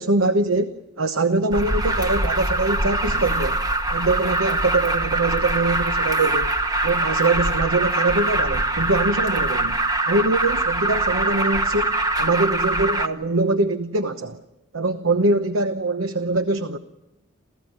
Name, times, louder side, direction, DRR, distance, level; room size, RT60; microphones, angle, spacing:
voice 1, 0.0-3.6 3.9-6.5 6.8-9.8 10.1-14.4 14.7-16.8, right 2 dB, 90° right, 10 dB, 1.0 m, -23 dB
Alarm, 1.5-13.1, right 2 dB, 20° right, 1.1 m, -23 dB
28.5 x 15.5 x 9.7 m, 1.0 s
head